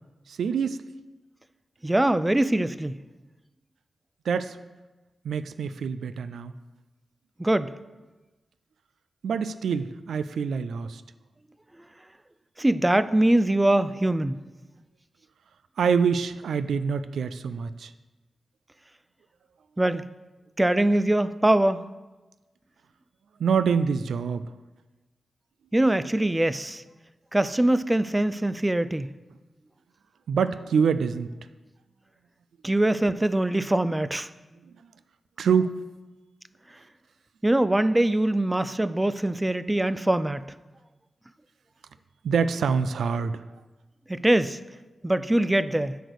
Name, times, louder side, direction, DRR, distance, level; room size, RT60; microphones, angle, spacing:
voice 1, 0.3-0.8 4.3-4.6 5.2-6.5 9.2-11.0 15.8-17.9 23.4-24.5 30.3-31.3 34.6-34.7 35.4-35.8 42.2-43.4, right 6 dB, 85° right, 0.3 m, -25 dB
voice 2, 1.8-3.0 7.4-7.7 12.6-14.4 19.8-20.1 20.6-21.8 25.7-26.8 27.3-29.1 32.6-34.3 37.4-40.5 44.1-44.6 45.0-46.0, right 1 dB, 20° right, 0.4 m, -23 dB
7.6 x 5.2 x 6.4 m
supercardioid pair, 40°, 0 cm